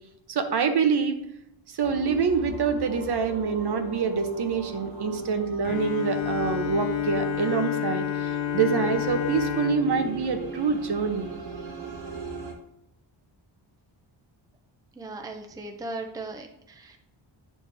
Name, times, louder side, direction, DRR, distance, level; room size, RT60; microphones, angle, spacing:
voice 1, 0.3-1.2 1.7-11.3, right 5 dB, 55° right, 7 dB, 0.8 m, -26 dB
sound 1, 1.8-12.5, right 3 dB, 80° right, 2.3 m, -38 dB
Bowed string instrument, 5.6-11.5, left 10 dB, 75° left, 0.9 m, -30 dB
voice 2, 15.0-17.0, right 2 dB, 10° right, 4 dB, 0.5 m, -37 dB
10.5 x 4.3 x 3.4 m, 0.81 s
wide cardioid pair, 170°, 46 cm